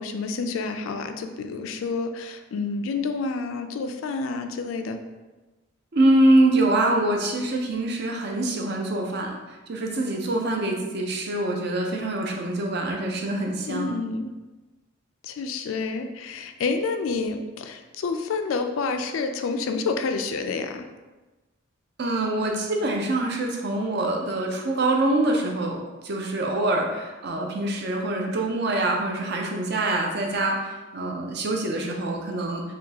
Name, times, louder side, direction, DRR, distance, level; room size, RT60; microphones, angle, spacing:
voice 1, 0.0-5.0 13.7-14.3 15.2-20.8, left 4 dB, 75° left, 7 dB, 0.4 m, -29 dB
voice 2, 5.9-9.3 9.7-13.9 22.0-25.8 26.0-32.6, right 1 dB, 55° right, 1 dB, 0.6 m, -24 dB
5.0 x 2.3 x 2.8 m, 1.2 s
head